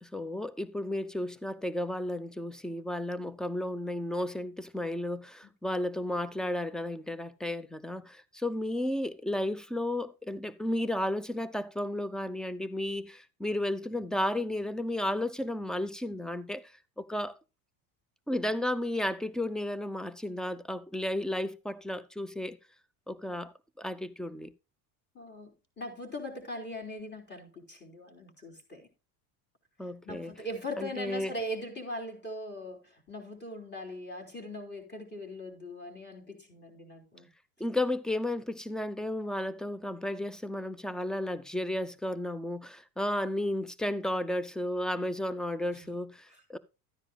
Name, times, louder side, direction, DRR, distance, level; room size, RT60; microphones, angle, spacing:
voice 1, 0.0-17.3 18.3-22.6 23.1-24.5 29.8-30.3 30.8-31.3 37.6-46.6, left 1 dB, ahead, 0.6 m, -33 dB
voice 2, 25.1-25.5 25.8-28.9 30.0-37.3 45.8-45.9, left 1 dB, 20° left, 4.1 m, -40 dB
13.5 x 9.9 x 2.3 m
supercardioid pair, 105°, 49 cm